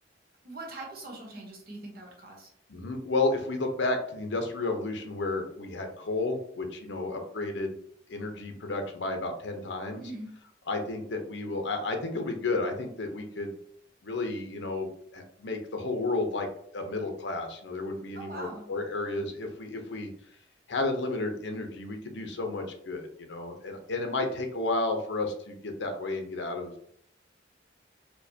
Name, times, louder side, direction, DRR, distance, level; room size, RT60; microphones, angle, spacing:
voice 1, 0.4-2.5 10.0-10.3 18.1-18.6, right 2 dB, 55° right, 0 dB, 1.0 m, -42 dB
voice 2, 2.7-7.8 8.1-10.1 10.7-13.6 14.0-16.5 16.7-20.1 20.7-26.8, left 2 dB, 75° left, 4 dB, 0.7 m, -32 dB
4.4 x 2.2 x 2.7 m, 0.65 s
head